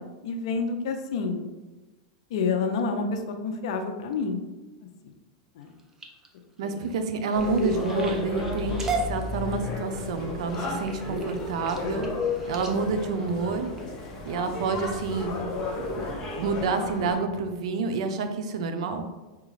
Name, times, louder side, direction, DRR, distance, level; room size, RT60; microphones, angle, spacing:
voice 1, 0.0-1.4 2.3-4.4 5.6-5.7 6.6-6.8, left 4 dB, 70° left, 6 dB, 0.5 m, -29 dB
sound 1, 5.6-14.3 14.9-15.2 15.7-16.0 16.5-16.6 16.9-17.0, right 3 dB, 15° right, 0.5 m, -38 dB
voice 2, 6.6-12.1 12.5-13.8 14.2-15.3 16.0-19.1, right 4 dB, 75° right, 7 dB, 0.5 m, -28 dB
sound 2, 7.3-17.2, left 3 dB, 30° left, 0.9 m, -32 dB
4.9 x 2.3 x 3.1 m, 1.2 s
supercardioid pair, 130°, 3 cm